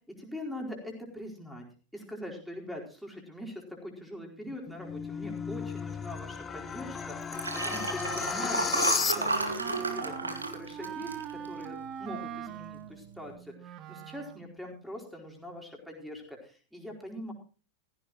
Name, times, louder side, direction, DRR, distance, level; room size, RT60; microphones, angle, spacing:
voice 1, 0.1-1.6 1.9-17.3, left 1 dB, ahead, -1 dB, 4.5 m, -43 dB
sound 1, 4.5-9.6, left 6 dB, 20° left, 0.9 m, -34 dB
Liquid, 7.2-11.9 12.3-12.6 12.9-13.0, right 3 dB, 80° right, 2.1 m, -32 dB
Wind instrument woodwind instrument, 7.9-14.5, right 9 dB, 35° right, 1.1 m, -43 dB
16.0 x 15.5 x 3.1 m, 0.37 s
figure-of-eight pair, 90°, 0 cm